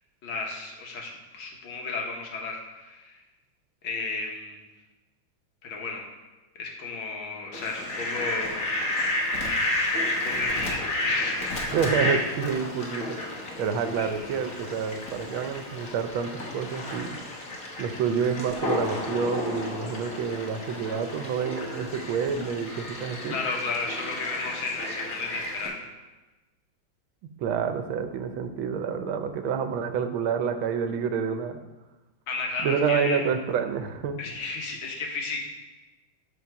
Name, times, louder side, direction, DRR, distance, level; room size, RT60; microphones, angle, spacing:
voice 1, 0.2-3.2 3.8-4.6 5.6-6.0 6.6-8.6 10.2-11.5 14.0-14.2 23.3-25.8 32.3-33.3 34.2-35.4, left 4 dB, 80° left, 1 dB, 2.1 m, -33 dB
Fowl, 7.5-25.7, left 1 dB, 50° left, 1.7 m, -32 dB
voice 2, 11.7-13.2 13.6-17.2 17.8-23.4 27.4-31.6 32.6-34.2, right 6 dB, 90° right, 8 dB, 1.6 m, -28 dB
12.5 x 4.5 x 4.7 m, 1.1 s
omnidirectional pair, 2.2 m